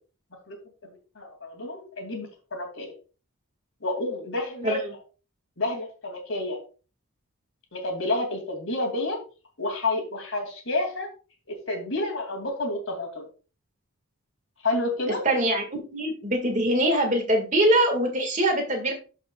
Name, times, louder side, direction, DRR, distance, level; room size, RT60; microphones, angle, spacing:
voice 1, 0.8-2.9 3.8-4.8 5.6-6.6 7.7-9.2 9.6-11.1 11.5-13.3 14.6-15.2, left 2 dB, 60° left, 3 dB, 2.6 m, -29 dB
voice 2, 15.2-15.6 15.9-18.9, right 1 dB, 35° right, 4 dB, 1.8 m, -23 dB
12.5 x 5.5 x 2.3 m, 0.35 s
head